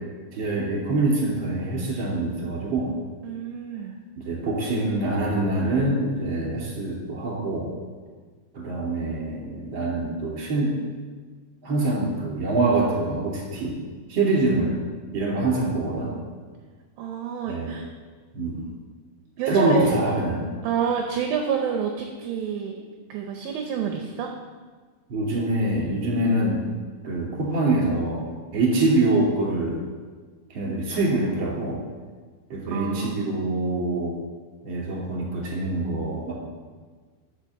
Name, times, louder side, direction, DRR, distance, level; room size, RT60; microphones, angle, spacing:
voice 1, 0.3-2.9 4.2-7.7 8.5-10.7 11.6-13.7 14.1-14.7 15.1-16.1 17.5-17.7 18.3-18.6 19.5-20.4 25.1-26.6 27.0-28.3 28.5-29.8 30.5-31.8 32.5-34.1 34.6-36.3, right 2 dB, 35° right, -3 dB, 2.9 m, -24 dB
voice 2, 3.2-4.0 17.0-17.9 19.4-20.0 20.6-22.8 23.1-24.3 32.7-33.3, right 7 dB, 75° right, 3 dB, 2.3 m, -28 dB
8.9 x 6.0 x 7.2 m, 1.5 s
omnidirectional pair, 4.6 m